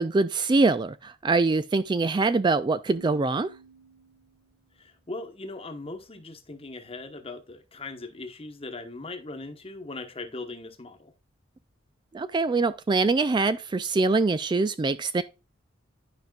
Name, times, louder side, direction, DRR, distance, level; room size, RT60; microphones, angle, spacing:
voice 1, 0.0-3.5 12.1-15.2, right 3 dB, 25° right, 0.3 m, -24 dB
Keyboard (musical), 2.9-4.7, right 4 dB, 50° right, 1.3 m, -52 dB
voice 2, 4.8-11.1, left 2 dB, 30° left, 1.2 m, -39 dB
12.0 x 5.2 x 2.3 m
head